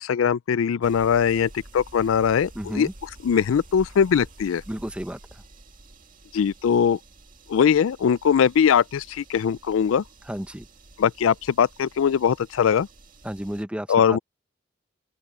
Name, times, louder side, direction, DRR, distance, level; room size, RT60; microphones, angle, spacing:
voice 1, 0.0-2.9 3.2-4.6 6.3-7.0 7.5-10.0 11.0-12.9 13.9-14.2, left 7 dB, 80° left, 0.4 m, -21 dB
sound 1, 0.8-13.6, right 2 dB, 40° right, 2.1 m, -49 dB
voice 2, 2.5-2.9 4.7-5.4 10.3-10.7 13.2-14.2, equal, 5° right, 0.8 m, -32 dB
open air
head